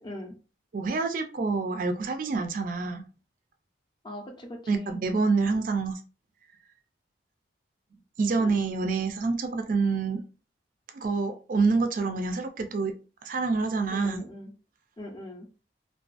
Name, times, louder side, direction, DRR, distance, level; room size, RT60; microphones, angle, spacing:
voice 1, 0.0-0.3 4.0-5.0 8.4-8.6 13.9-14.5 15.0-15.5, left 1 dB, 25° left, 2 dB, 0.4 m, -40 dB
voice 2, 0.7-3.0 4.7-5.9 8.2-10.2 10.9-12.9 13.2-14.2, right 4 dB, 45° right, 6 dB, 0.3 m, -27 dB
2.4 x 2.2 x 2.4 m, 0.34 s
head